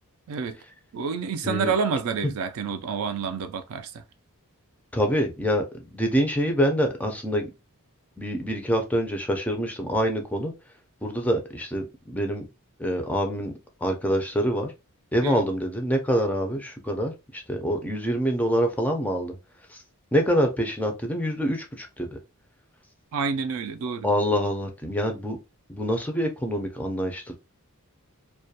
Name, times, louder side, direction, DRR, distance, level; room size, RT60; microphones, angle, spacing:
voice 1, 0.9-3.9 15.2-15.4 23.1-24.1, right 5 dB, 70° right, 0.4 m, -28 dB
voice 2, 4.9-5.6 5.9-7.5 8.2-10.5 11.0-12.5 12.8-13.5 13.8-14.7 15.1-19.3 20.1-22.1 24.0-25.4 25.7-27.4, equal, 5° left, 0.4 m, -25 dB
2.3 x 2.1 x 2.7 m
head